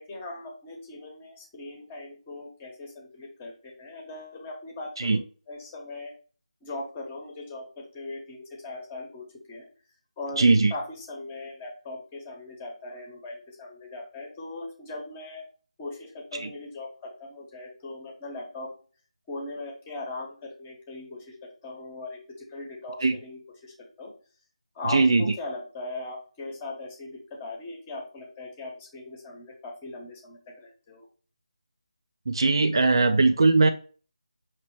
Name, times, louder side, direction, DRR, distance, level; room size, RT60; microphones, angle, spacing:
voice 1, 0.0-6.1 6.6-9.7 10.2-10.4 10.7-15.5 15.8-18.7 19.3-24.1 24.7-31.1, left 2 dB, 15° left, 0 dB, 1.0 m, -39 dB
voice 2, 10.4-10.7 16.3-16.5 23.0-23.1 24.9-25.3 32.3-33.7, right 3 dB, 45° right, 8 dB, 0.4 m, -20 dB
5.8 x 2.9 x 3.0 m, 0.39 s
figure-of-eight pair, 160°, 4 cm